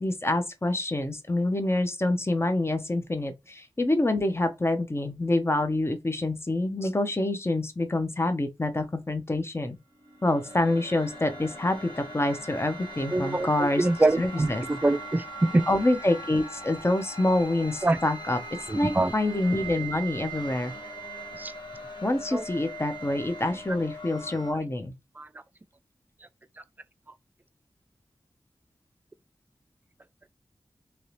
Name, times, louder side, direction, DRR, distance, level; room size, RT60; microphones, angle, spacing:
voice 1, 0.0-9.8 10.2-13.9 14.2-14.6 15.7-18.4 18.7-20.7 22.0-24.9, left 2 dB, 25° left, 0.6 m, -26 dB
sound 1, 9.9-24.5, right 1 dB, 55° left, 1.3 m, -40 dB
voice 2, 13.1-15.6 17.8-18.0 18.9-19.1 21.4-21.5 22.3-22.4 25.2-25.3, right 2 dB, 20° right, 0.3 m, -24 dB
2.9 x 2.7 x 3.1 m
wide cardioid pair, 55°, 9 cm